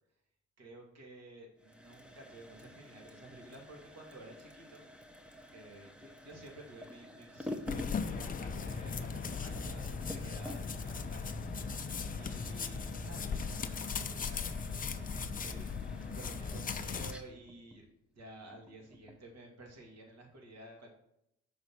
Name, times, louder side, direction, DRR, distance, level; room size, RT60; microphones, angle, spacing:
voice 1, 0.6-4.8 5.5-11.9 12.2-17.8 18.2-20.9, right 1 dB, 55° right, 0 dB, 2.4 m, -53 dB
sound 1, 1.6-19.3, left 1 dB, 5° right, 0.8 m, -50 dB
sound 2, 7.7-17.1, left 5 dB, 30° left, 0.6 m, -38 dB
6.1 x 4.1 x 6.0 m, 0.80 s
cardioid pair, 90°, 30 cm